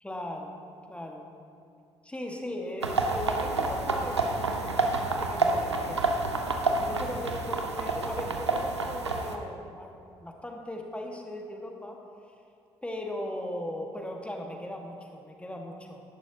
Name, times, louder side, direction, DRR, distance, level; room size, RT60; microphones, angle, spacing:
voice 1, 0.0-0.6 0.9-1.3 2.0-6.1 6.8-12.0 12.8-16.0, left 1 dB, 10° left, 1 dB, 1.6 m, -38 dB
sound 1, 2.8-9.4, right 3 dB, 85° right, 0.6 m, -29 dB
14.5 x 11.5 x 2.8 m, 2.4 s
figure-of-eight pair, 45°, 14 cm